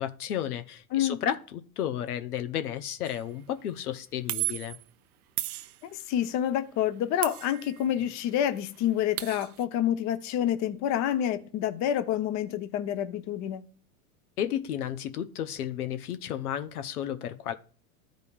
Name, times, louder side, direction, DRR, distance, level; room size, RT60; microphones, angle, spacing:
voice 1, 0.0-4.8 14.4-17.5, left 10 dB, 85° left, 0.9 m, -33 dB
sound 1, 3.1-3.3 4.3-4.8 5.4-6.2 7.2-8.1 8.4-8.5 8.8-9.6, right 16 dB, 75° right, 0.7 m, -35 dB
voice 2, 5.9-13.6, left 11 dB, 40° left, 0.9 m, -28 dB
13.5 x 5.2 x 2.4 m
hypercardioid pair, 115°, 44 cm